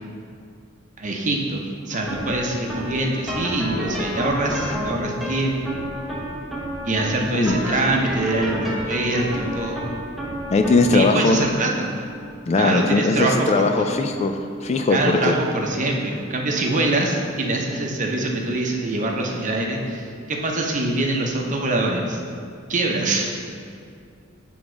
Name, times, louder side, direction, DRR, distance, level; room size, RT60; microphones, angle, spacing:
voice 1, 1.0-5.8 6.8-9.8 10.9-11.9 12.6-13.8 14.9-22.2 22.7-23.2, right 2 dB, 35° right, 0 dB, 0.8 m, -24 dB
sound 1, 1.9-19.1, right 1 dB, ahead, 0.9 m, -33 dB
voice 2, 10.5-11.4 12.5-15.4, left 3 dB, 30° left, 5 dB, 0.3 m, -20 dB
6.7 x 3.6 x 6.2 m, 2.3 s
head